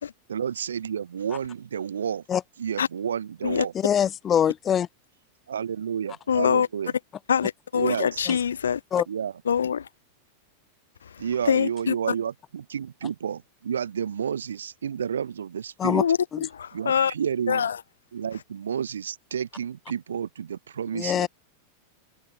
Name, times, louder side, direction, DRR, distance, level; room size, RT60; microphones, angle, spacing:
voice 1, 0.3-2.2 2.6-3.7 5.5-6.9 7.7-8.2 9.1-9.3 11.2-16.1 16.7-17.7 18.1-21.3, right 8 dB, 65° right, 0.9 m, -30 dB
voice 2, 3.7-4.9 8.9-9.0 15.8-16.0 16.3-16.4 20.9-21.3, left 9 dB, 25° left, 0.9 m, -23 dB
voice 3, 6.3-6.7 7.3-8.8 9.5-9.9 11.0-11.9 16.0-17.1 17.5-17.8, left 7 dB, 70° left, 0.5 m, -24 dB
figure-of-eight pair, 90°, 0 cm